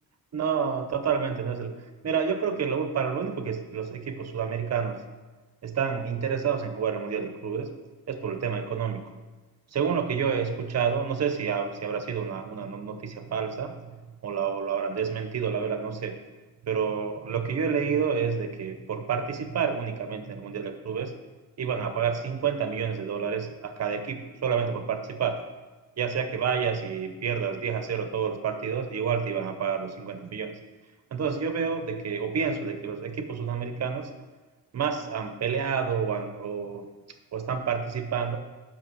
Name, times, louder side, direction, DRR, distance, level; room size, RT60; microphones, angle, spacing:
voice 1, 0.3-1.8 2.0-5.0 5.6-7.7 8.1-9.1 9.7-13.8 14.2-16.2 16.6-21.1 21.6-25.4 26.0-30.6 31.1-34.1 34.7-36.9 37.3-38.4, right 6 dB, 45° right, 7 dB, 0.7 m, -29 dB
8.7 x 5.9 x 6.2 m, 1.3 s
wide cardioid pair, 155°, 36 cm